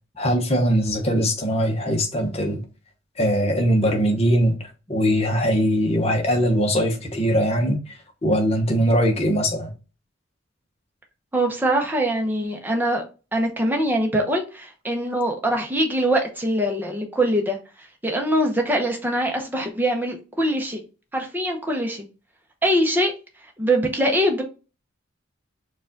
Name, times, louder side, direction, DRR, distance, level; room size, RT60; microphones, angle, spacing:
voice 1, 0.2-2.6 3.2-7.8 8.2-9.7, equal, 30° left, 0.9 m, -21 dB
voice 2, 11.3-13.0 13.3-20.8 21.1-22.0 22.6-23.1 23.6-24.4, right 1 dB, 10° right, 0.8 m, -23 dB
4.6 x 2.5 x 3.9 m
head